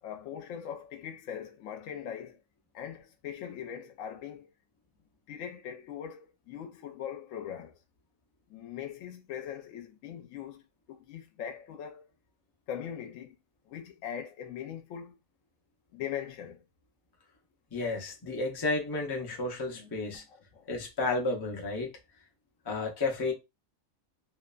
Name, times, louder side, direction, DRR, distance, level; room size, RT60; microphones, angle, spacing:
voice 1, 0.0-2.4 2.7-4.5 5.3-7.8 8.5-10.6 10.9-12.0 12.7-13.4 13.7-15.2 15.9-16.6 20.3-20.7, left 9 dB, 75° left, 0.9 m, -41 dB
voice 2, 17.7-20.2 20.7-21.9 22.7-23.3, left 3 dB, 40° left, 0.3 m, -32 dB
2.7 x 2.1 x 2.3 m
omnidirectional pair, 1.4 m